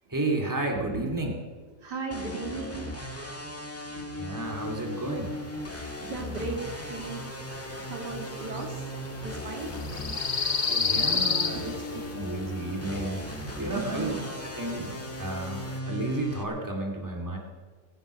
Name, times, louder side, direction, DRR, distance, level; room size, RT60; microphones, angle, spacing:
voice 1, 0.1-1.4 4.2-5.3 10.6-13.3 13.6-17.4, right 2 dB, 10° right, 0 dB, 2.4 m, -32 dB
voice 2, 0.7-1.1 1.8-2.9 3.9-4.0 5.7-8.9 9.2-9.7 10.7-11.7 13.7-14.1, right 4 dB, 90° right, 2 dB, 3.0 m, -37 dB
sound 1, 2.1-16.4, left 1 dB, 10° left, 1.6 m, -38 dB
sound 2, 4.9-15.8, left 5 dB, 35° left, 1.0 m, -34 dB
19.0 x 10.5 x 6.4 m, 1.5 s
omnidirectional pair, 1.7 m